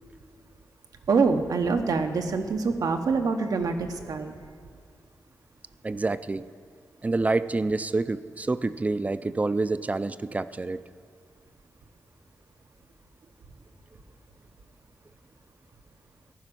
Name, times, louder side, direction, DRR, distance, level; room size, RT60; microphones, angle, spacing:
voice 1, 1.1-4.4, right 4 dB, 85° right, 6 dB, 1.0 m, -25 dB
voice 2, 5.8-6.5 7.0-10.8, right 3 dB, 25° right, 14 dB, 0.4 m, -27 dB
14.5 x 6.1 x 9.9 m, 2.1 s
wide cardioid pair, 125°, 6 cm